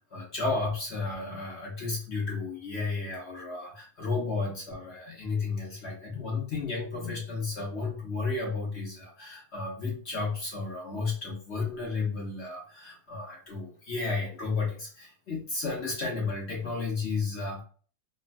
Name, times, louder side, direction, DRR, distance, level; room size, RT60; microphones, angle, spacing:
voice 1, 0.1-17.6, left 4 dB, 55° left, -2 dB, 0.8 m, -33 dB
3.1 x 2.1 x 2.5 m, 0.42 s
omnidirectional pair, 1.7 m